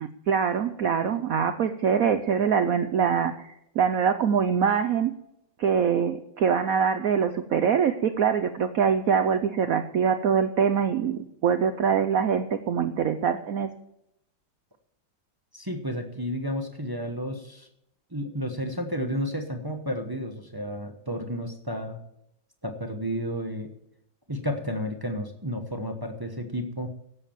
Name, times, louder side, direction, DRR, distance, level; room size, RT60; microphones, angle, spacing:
voice 1, 0.0-5.1 5.6-13.7, right 7 dB, 65° right, 10 dB, 0.8 m, -24 dB
voice 2, 15.5-17.7 18.1-22.0 22.6-23.7 24.3-26.9, equal, 15° right, 4 dB, 0.7 m, -32 dB
12.5 x 8.4 x 7.2 m, 0.78 s
omnidirectional pair, 2.2 m